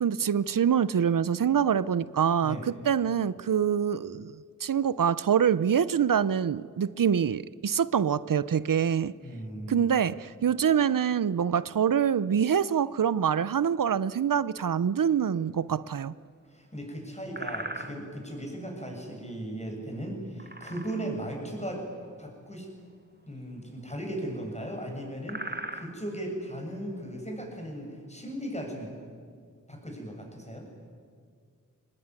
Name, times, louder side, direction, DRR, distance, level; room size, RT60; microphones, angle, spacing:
voice 1, 0.0-9.1 9.7-16.1, right 8 dB, 85° right, 18 dB, 0.6 m, -25 dB
voice 2, 2.4-2.7 9.2-10.0 16.5-21.8 22.2-22.7 23.3-28.9 29.7-30.7, right 1 dB, 20° left, 1 dB, 7.2 m, -37 dB
sound 1, 15.7-16.3 16.6-16.9 17.3-18.4 20.2-21.3 21.6-21.7 22.0-22.3 23.2-24.4 24.6-24.7 25.0-27.8, right 2 dB, 30° right, 2.1 m, -40 dB
24.5 x 19.5 x 9.7 m, 2.1 s
wide cardioid pair, 55°, 32 cm